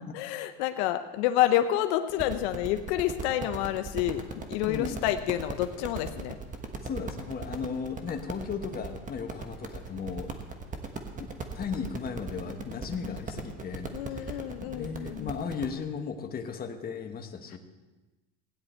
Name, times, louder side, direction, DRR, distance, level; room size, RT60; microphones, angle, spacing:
voice 1, 0.1-6.4 13.1-13.2 13.9-15.3, left 12 dB, 85° left, 9 dB, 0.8 m, -29 dB
sound 1, 2.1-15.7, right 4 dB, 25° right, 1.3 m, -39 dB
voice 2, 4.6-5.0 6.8-10.3 11.2-17.6, left 6 dB, 30° left, 5 dB, 1.3 m, -36 dB
16.5 x 9.9 x 4.4 m, 1.2 s
supercardioid pair, 125°, 32 cm